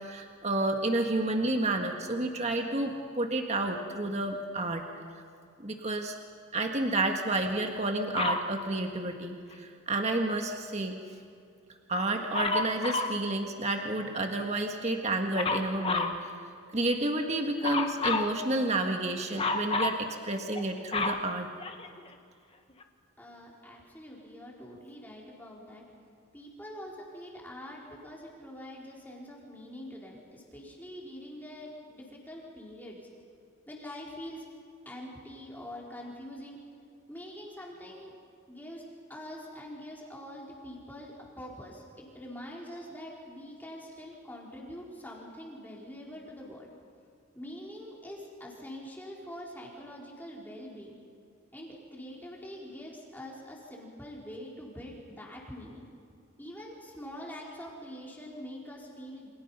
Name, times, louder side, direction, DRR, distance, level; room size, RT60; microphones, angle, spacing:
voice 1, 0.0-4.9 5.6-6.1 6.5-11.0 11.9-16.3 16.7-21.5, right 2 dB, 30° right, 3 dB, 1.7 m, -30 dB
Dog, 8.2-8.5 12.3-13.2 15.4-16.2 17.6-18.3 19.4-20.0 20.6-22.1 22.8-22.9, left 3 dB, 25° left, 1.4 m, -30 dB
voice 2, 23.2-25.8 26.3-33.0 33.7-34.5 34.8-36.6 37.1-38.1 38.5-46.7 47.3-51.0 51.5-55.8 56.4-59.3, equal, 10° left, -3 dB, 4.1 m, -44 dB
29.0 x 27.0 x 5.7 m, 2.4 s
head